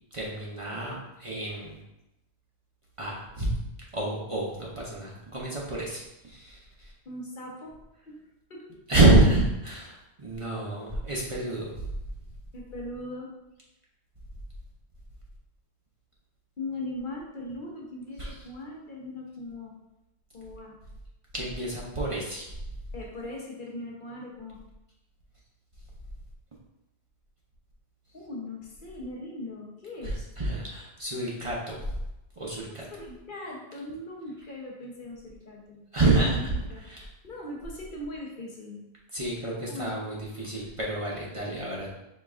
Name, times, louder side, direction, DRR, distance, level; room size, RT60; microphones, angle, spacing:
voice 1, 0.1-1.8 3.0-3.5 3.9-6.9 8.9-11.9 18.2-18.4 21.3-22.5 30.0-32.0 32.4-32.9 35.9-36.5 36.9-37.1 39.1-41.9, right 2 dB, 35° right, -4 dB, 0.7 m, -28 dB
voice 2, 7.0-7.8 8.1-8.2 8.5-8.7 12.5-13.3 16.6-19.7 20.3-20.8 22.9-24.6 28.1-30.3 32.7-35.8 36.3-36.9 37.2-38.8 39.7-39.9, left 1 dB, 50° left, -1 dB, 1.0 m, -39 dB
5.0 x 3.6 x 2.4 m, 0.91 s
omnidirectional pair, 1.1 m